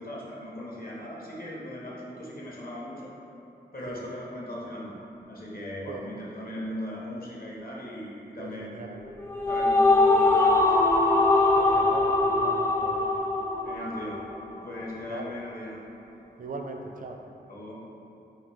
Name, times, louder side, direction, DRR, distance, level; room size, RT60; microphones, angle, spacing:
voice 1, 0.0-3.1 3.7-5.0 5.3-8.8 9.5-10.8 13.6-14.2 14.6-15.8 17.5-17.8, left 1 dB, 55° left, -4 dB, 1.0 m, -38 dB
voice 2, 8.4-9.0 11.6-13.1 15.1-15.3 16.4-17.2, right 3 dB, 50° right, 3 dB, 0.4 m, -39 dB
sound 1, 9.0-14.5, left 2 dB, 15° left, 0.4 m, -22 dB
4.0 x 2.7 x 4.6 m, 2.7 s
wide cardioid pair, 65°, 19 cm